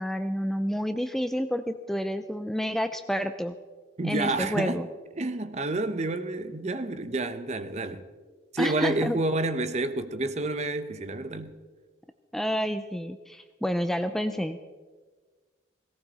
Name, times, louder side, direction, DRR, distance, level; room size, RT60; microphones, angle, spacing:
voice 1, 0.0-3.5 4.0-4.9 8.6-9.2 12.3-14.6, equal, ahead, 0.4 m, -29 dB
voice 2, 4.0-4.8 5.2-8.0 8.5-11.6, right 2 dB, 35° right, 0.8 m, -29 dB
18.0 x 17.5 x 4.1 m
head